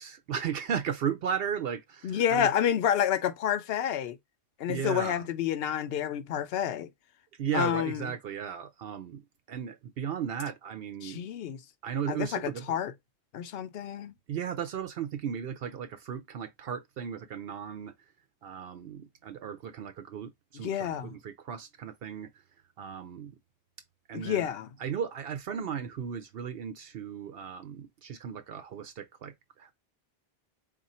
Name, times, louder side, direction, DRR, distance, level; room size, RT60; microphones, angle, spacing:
voice 1, 0.0-2.5 4.7-5.2 7.4-9.2 9.5-11.2 11.8-12.7 14.3-17.9 18.4-22.3 22.8-23.3 24.1-24.5 24.8-29.7, right 8 dB, 70° right, 0.8 m, -35 dB
voice 2, 2.0-4.2 4.6-6.9 7.5-8.1 11.0-11.6 12.1-12.9 13.3-14.1 20.5-21.1 24.1-24.7, left 9 dB, 75° left, 0.8 m, -29 dB
3.7 x 2.5 x 4.1 m
omnidirectional pair, 1.0 m